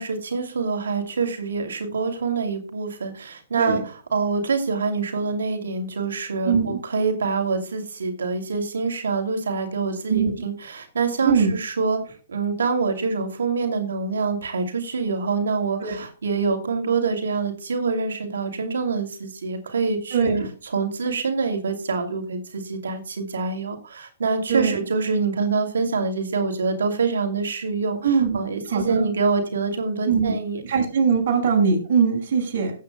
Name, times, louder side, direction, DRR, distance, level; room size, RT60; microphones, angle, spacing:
voice 1, 0.0-20.3 20.6-30.6, right 4 dB, 80° right, 5 dB, 2.6 m, -25 dB
voice 2, 6.4-6.8 10.1-10.3 11.2-11.5 15.8-16.0 20.1-20.5 24.5-24.8 28.0-28.4 28.7-29.1 30.1-30.4 30.6-32.7, right 6 dB, 55° right, 0 dB, 5.7 m, -21 dB
18.0 x 8.6 x 2.2 m, 0.38 s
hypercardioid pair, 135°, 0 cm